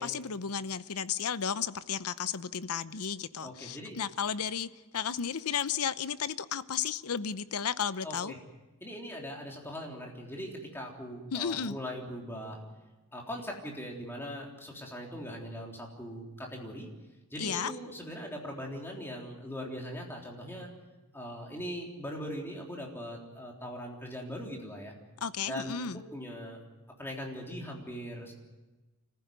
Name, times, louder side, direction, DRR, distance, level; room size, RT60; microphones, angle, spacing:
voice 1, 0.0-8.3 11.3-11.8 17.4-17.7 25.2-26.0, left 7 dB, 80° left, 15 dB, 0.7 m, -33 dB
voice 2, 3.4-4.0 8.0-8.4 8.8-12.6 13.1-16.9 17.3-20.7 21.1-24.9 25.5-26.6 27.0-28.3, equal, 10° left, -1 dB, 3.6 m, -40 dB
25.5 x 15.5 x 9.4 m, 1.1 s
head